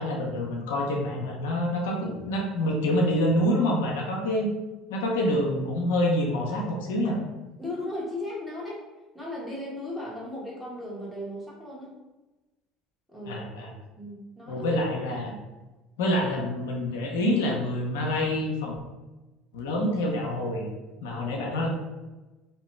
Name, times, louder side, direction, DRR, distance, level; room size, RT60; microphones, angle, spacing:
voice 1, 0.0-4.5 4.9-7.2 13.3-13.7 14.5-15.3 16.0-18.7 19.5-20.7 21.0-21.7, left 1 dB, 80° left, 0 dB, 0.5 m, -27 dB
voice 2, 7.6-8.9 9.1-11.9 13.1-13.4 14.0-14.6, left 1 dB, ahead, -6 dB, 1.2 m, -36 dB
2.8 x 2.2 x 3.2 m, 1.1 s
hypercardioid pair, 75°, 0 cm